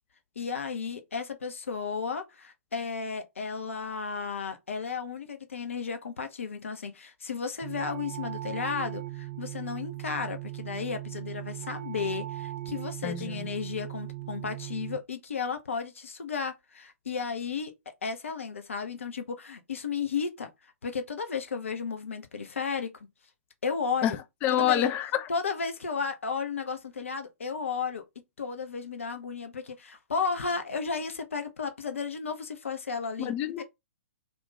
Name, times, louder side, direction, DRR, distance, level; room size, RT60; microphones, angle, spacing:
voice 1, 0.4-17.7 18.0-20.5 20.8-22.9 23.6-24.2 24.5-24.9 25.3-28.0 28.4-33.6, left 5 dB, 65° left, 0.7 m, -33 dB
sound 1, 7.6-15.0, right 16 dB, 40° right, 0.4 m, -38 dB
voice 2, 13.0-13.5 24.0-25.3 33.2-33.6, left 11 dB, 20° left, 0.4 m, -27 dB
2.6 x 2.3 x 3.7 m
figure-of-eight pair, 120°, 8 cm